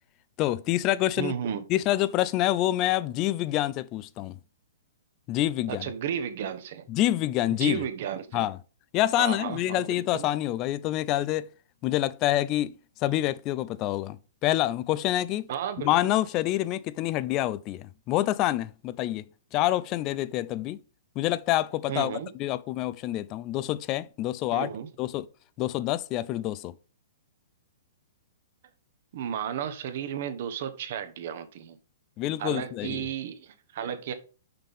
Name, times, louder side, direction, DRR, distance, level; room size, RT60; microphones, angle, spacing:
voice 1, 0.4-1.3 1.7-4.4 5.3-5.9 6.9-7.8 8.3-8.6 8.9-11.5 11.8-15.5 15.8-19.2 19.5-20.8 21.2-24.7 25.0-25.3 25.6-26.7 32.2-33.1, left 14 dB, 35° left, 0.5 m, -27 dB
voice 2, 1.2-1.6 5.7-6.9 7.5-8.5 9.2-10.3 15.5-16.2 21.9-22.3 24.5-24.9 29.1-31.8 32.4-34.1, right 9 dB, 55° right, 1.1 m, -33 dB
5.9 x 5.5 x 5.3 m
hypercardioid pair, 130°, 0 cm